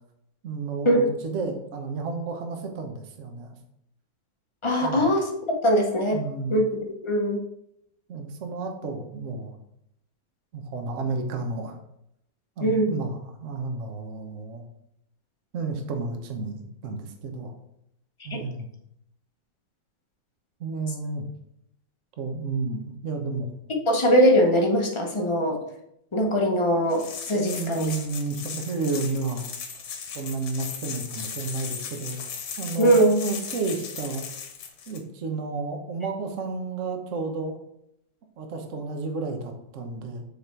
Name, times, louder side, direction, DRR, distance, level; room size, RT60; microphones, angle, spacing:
voice 1, 0.4-3.6 4.8-5.0 6.1-6.6 8.1-9.6 10.5-11.8 12.6-14.6 15.5-17.5 18.2-18.7 20.6-21.3 22.2-23.5 27.4-29.5 30.1-32.3 32.6-34.3 34.9-37.6 38.4-40.2, right 3 dB, 50° right, 4 dB, 1.1 m, -31 dB
voice 2, 4.6-5.3 5.6-6.2 6.5-7.4 12.6-13.0 18.3-18.4 23.9-25.6 26.1-27.9 32.8-33.1, equal, 35° left, 1 dB, 0.4 m, -21 dB
sound 1, 26.9-35.0, left 6 dB, 65° left, 1.5 m, -37 dB
7.0 x 4.2 x 4.6 m, 0.77 s
omnidirectional pair, 2.1 m